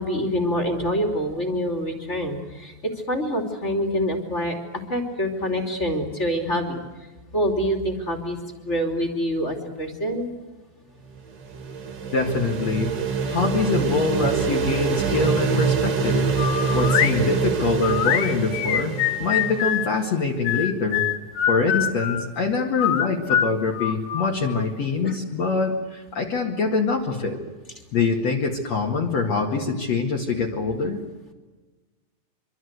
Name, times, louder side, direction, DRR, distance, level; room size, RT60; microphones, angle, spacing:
voice 1, 0.0-4.6 4.9-6.8 7.3-8.4 8.6-10.3 25.0-25.1, equal, 20° left, 4 dB, 2.8 m, -26 dB
sound 1, 11.2-20.0, right 5 dB, 40° right, 1.7 m, -25 dB
voice 2, 12.1-12.9 13.3-16.3 16.7-18.9 19.2-21.1 21.5-27.4 27.9-31.0, left 4 dB, 50° left, 0 dB, 2.8 m, -24 dB
sound 2, 16.4-17.2 17.8-19.9 20.4-22.3 22.8-24.6, left 10 dB, 70° left, 2.6 m, -24 dB
26.0 x 24.0 x 8.1 m, 1.2 s
omnidirectional pair, 4.2 m